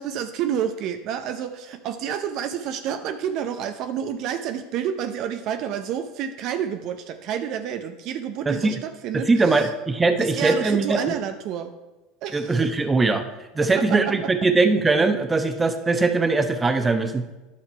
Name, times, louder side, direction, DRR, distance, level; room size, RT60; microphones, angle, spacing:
voice 1, 0.0-9.7 10.2-11.7 12.2-12.6 13.6-14.1, right 9 dB, 55° right, 7 dB, 0.6 m, -29 dB
voice 2, 9.1-11.2 12.3-13.2 13.5-17.3, right 3 dB, 20° right, 8 dB, 0.9 m, -21 dB
10.5 x 5.8 x 4.4 m, 1.1 s
hypercardioid pair, 85°, 0 cm